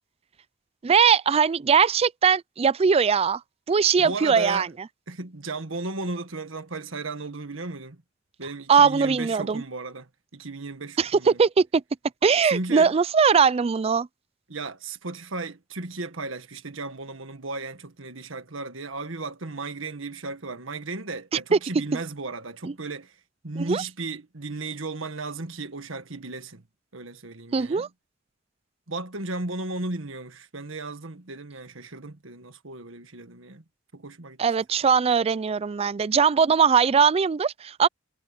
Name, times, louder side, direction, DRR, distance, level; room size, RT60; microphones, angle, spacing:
voice 1, 0.8-3.4 3.7-4.7 8.7-9.6 11.0-11.8 12.2-14.1 21.5-21.6 22.6-22.7 23.7-23.8 27.5-27.9 34.4-37.9, right 6 dB, 30° right, 0.4 m, -20 dB
voice 2, 4.0-4.7 5.1-8.0 8.4-11.4 12.4-12.9 14.5-23.2 23.4-26.6 26.9-27.9 28.9-33.6 33.9-34.4, right 3 dB, 75° right, 1.7 m, -35 dB
head